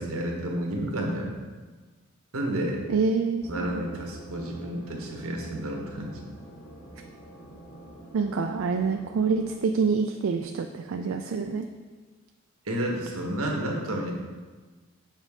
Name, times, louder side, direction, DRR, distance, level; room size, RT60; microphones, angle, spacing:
voice 1, 0.0-1.3 2.3-2.8 3.5-6.2 12.6-14.1, right 1 dB, 90° right, 0 dB, 1.3 m, -31 dB
voice 2, 2.9-3.7 8.1-11.7, right 4 dB, 70° right, 5 dB, 0.4 m, -26 dB
sound 1, 3.4-9.5, right 1 dB, 35° left, 1.5 m, -46 dB
7.3 x 5.3 x 3.6 m, 1.4 s
head